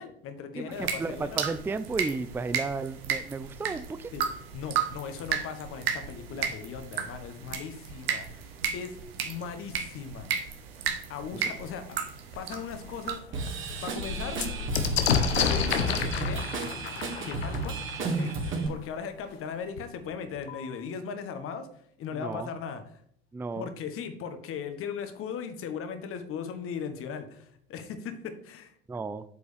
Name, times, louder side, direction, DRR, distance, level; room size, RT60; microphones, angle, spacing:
voice 1, 0.0-1.4 4.1-4.2 4.5-10.3 11.1-12.0 12.3-13.2 13.8-14.4 15.4-16.5 17.2-17.8 18.0-21.7 22.0-22.8 23.6-28.7, left 6 dB, 45° left, 8 dB, 1.5 m, -38 dB
voice 2, 0.6-4.1 11.3-11.5 22.1-22.5 23.3-23.7 28.9-29.2, right 4 dB, 5° right, 12 dB, 0.4 m, -33 dB
sound 1, 0.7-13.2, right 7 dB, 70° right, 1.2 m, -34 dB
sound 2, 12.3-12.4 12.9-13.0 13.2-18.8 19.8-19.9 20.1-20.7, left 6 dB, 80° left, 0.9 m, -30 dB
Drum kit / Drum, 13.3-18.7, right 3 dB, 40° right, 2.2 m, -33 dB
8.4 x 6.8 x 3.4 m, 0.65 s
figure-of-eight pair, 70°, 31 cm